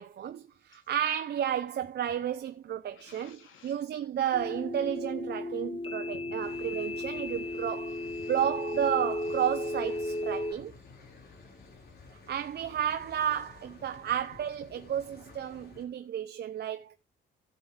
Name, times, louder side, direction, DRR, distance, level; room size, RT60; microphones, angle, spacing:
voice 1, 0.0-8.0 8.3-10.7 12.3-16.9, right 10 dB, 55° right, 0.8 m, -32 dB
voice 2, 2.9-3.8 6.1-6.3 7.9-8.3 10.9-11.7, left 7 dB, 80° left, 2.8 m, -56 dB
sound 1, 4.3-10.5, left 2 dB, 25° left, 1.5 m, -35 dB
sound 2, 6.4-15.8, left 3 dB, 55° left, 5.4 m, -53 dB
12.0 x 8.1 x 3.4 m
cardioid pair, 90°, 20 cm